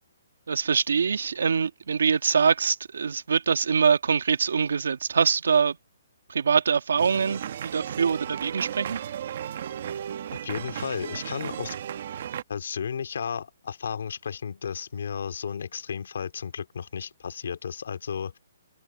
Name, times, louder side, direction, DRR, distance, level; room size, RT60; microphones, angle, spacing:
voice 1, 0.5-5.8 6.3-9.0, right 6 dB, 75° right, 1.8 m, -24 dB
sound 1, 7.0-12.4, right 9 dB, 45° right, 1.1 m, -35 dB
voice 2, 10.4-11.8 12.5-18.4, left 7 dB, 65° left, 2.4 m, -33 dB
hypercardioid pair, 170°, 0 cm